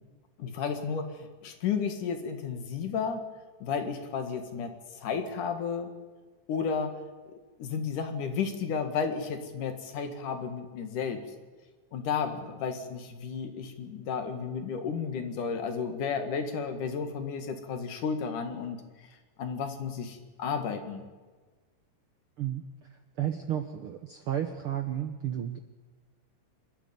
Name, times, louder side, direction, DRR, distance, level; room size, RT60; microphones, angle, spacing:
voice 1, 0.4-3.2 3.6-5.9 6.5-6.9 7.6-11.2 11.9-18.8 19.4-21.0, left 6 dB, 75° left, 7 dB, 3.3 m, -32 dB
voice 2, 23.2-25.6, right 10 dB, 70° right, 7 dB, 1.3 m, -32 dB
26.0 x 13.0 x 9.4 m, 1.4 s
omnidirectional pair, 3.8 m